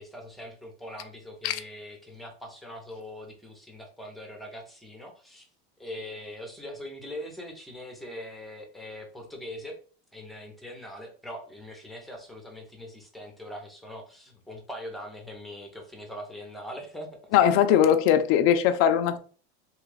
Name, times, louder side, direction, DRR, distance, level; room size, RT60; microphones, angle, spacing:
voice 1, 0.0-5.5 5.8-9.8 10.1-17.2, left 1 dB, ahead, 0.7 m, -42 dB
voice 2, 17.3-19.2, left 9 dB, 45° left, 0.5 m, -20 dB
3.0 x 2.3 x 3.2 m
supercardioid pair, 130°, 32 cm